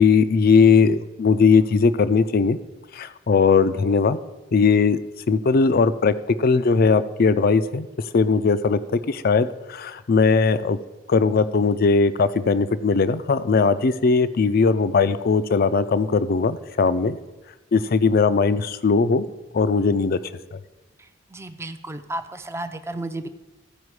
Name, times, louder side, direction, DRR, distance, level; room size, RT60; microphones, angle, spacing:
voice 1, 0.0-2.6 2.9-4.2 4.5-5.0 5.3-7.9 8.1-8.8 9.1-10.8 11.1-17.2 17.7-19.3 19.5-20.2 20.5-20.6, left 5 dB, 50° left, 13 dB, 0.4 m, -19 dB
voice 2, 21.3-23.3, right 1 dB, 15° right, 8 dB, 0.5 m, -32 dB
14.5 x 5.0 x 4.8 m, 1.1 s
head